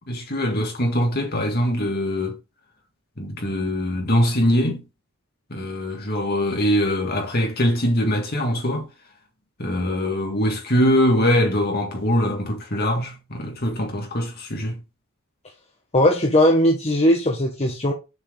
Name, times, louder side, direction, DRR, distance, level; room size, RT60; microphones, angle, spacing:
voice 1, 0.1-2.4 3.2-4.8 5.5-8.9 9.6-14.8, equal, 45° left, 2.0 m, -22 dB
voice 2, 15.9-17.9, left 1 dB, 30° left, 1.0 m, -18 dB
7.0 x 4.6 x 3.7 m
head